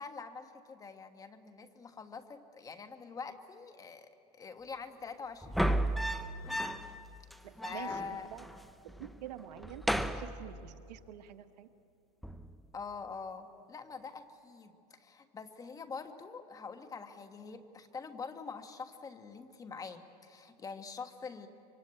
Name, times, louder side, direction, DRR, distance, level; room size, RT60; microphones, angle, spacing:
voice 1, 0.0-4.1 4.4-6.2 7.6-8.3 12.7-21.5, left 5 dB, 15° left, 8 dB, 1.3 m, -45 dB
sound 1, 5.4-7.0 7.3-7.4 7.6-8.6 8.9-9.2 9.6-11.0 12.2-12.6, right 1 dB, ahead, 0.7 m, -34 dB
voice 2, 7.4-8.4 9.0-9.8 10.1-11.7, right 11 dB, 85° right, 9 dB, 1.3 m, -47 dB
24.5 x 24.5 x 8.9 m, 2.6 s
supercardioid pair, 140°, 21 cm